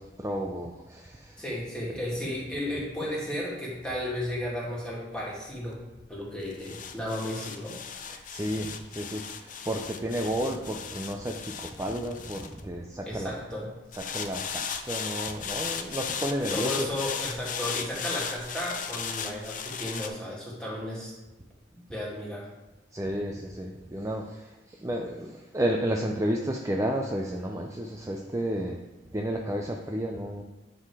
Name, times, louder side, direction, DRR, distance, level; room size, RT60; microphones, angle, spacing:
voice 1, 0.0-1.4 8.1-13.3 13.9-16.9 22.9-28.8 29.1-30.4, right 1 dB, 15° right, 1 dB, 0.5 m, -32 dB
voice 2, 1.4-5.8 6.1-7.8 13.0-13.7 16.5-21.1 21.7-22.5, left 1 dB, 5° left, -6 dB, 2.1 m, -34 dB
sound 1, 3.8-13.2 13.9-20.1, left 7 dB, 45° left, 0.6 m, -36 dB
8.9 x 3.8 x 4.8 m, 1.1 s
head